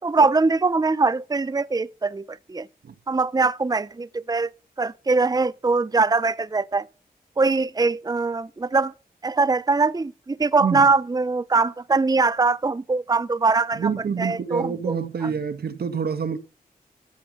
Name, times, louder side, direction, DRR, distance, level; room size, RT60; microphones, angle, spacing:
voice 1, 0.0-2.7 3.1-4.5 4.8-6.8 7.4-8.9 9.2-13.9 14.2-14.9 15.2-15.3, right 3 dB, 25° right, 0.6 m, -22 dB
voice 2, 13.7-16.4, right 6 dB, 85° right, 1.6 m, -27 dB
13.5 x 8.4 x 5.5 m
cardioid pair, 55°, 16 cm